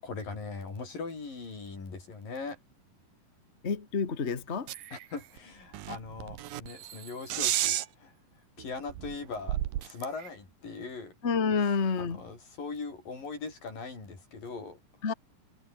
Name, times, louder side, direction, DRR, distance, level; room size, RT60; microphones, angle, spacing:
voice 1, 0.0-2.6 4.9-8.1 8.6-11.1 12.0-14.8, left 4 dB, 75° left, 8.6 m, -40 dB
voice 2, 3.6-4.7 11.2-12.2 15.0-15.1, left 5 dB, 30° left, 1.2 m, -28 dB
sound 1, 4.7-5.0 5.4-5.5 5.7-7.9 8.6-8.7 8.9-10.3, right 13 dB, 80° right, 3.0 m, -32 dB
omnidirectional pair, 4.0 m